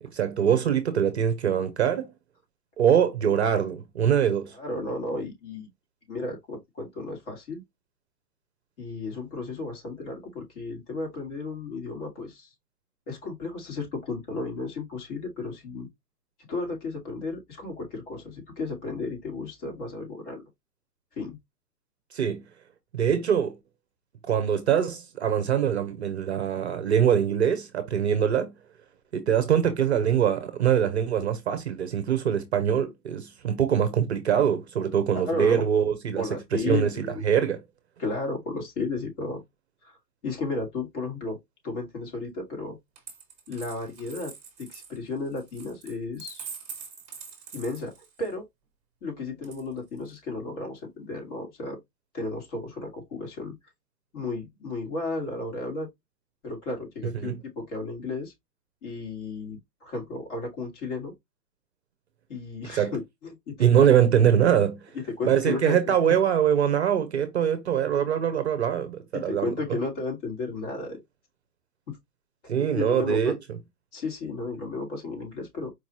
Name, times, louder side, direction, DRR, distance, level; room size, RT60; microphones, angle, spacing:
voice 1, 0.0-2.1 2.8-4.5 22.1-22.4 22.9-23.6 24.3-28.5 29.1-37.6 57.2-57.4 62.6-62.9 63.6-64.8 65.2-69.8 72.5-73.3, right 8 dB, 40° right, 0.6 m, -23 dB
voice 2, 4.5-5.7 6.1-7.6 8.8-12.5 13.1-15.9 16.5-20.4 21.2-21.4 35.1-35.8 36.2-37.2 38.0-39.4 40.2-41.4 41.6-42.8 43.5-44.3 44.6-46.5 47.5-47.9 48.2-48.4 49.0-51.8 52.1-53.6 54.1-55.9 56.4-58.3 58.8-61.1 62.3-63.6 64.9-65.8 69.1-71.0 71.9-72.0 72.6-73.3 73.9-75.7, left 3 dB, 45° left, 2.1 m, -33 dB
Coin (dropping), 43.0-48.3 49.4-50.1, right 6 dB, 15° right, 1.0 m, -44 dB
4.6 x 2.5 x 2.9 m
hypercardioid pair, 155°, 50 cm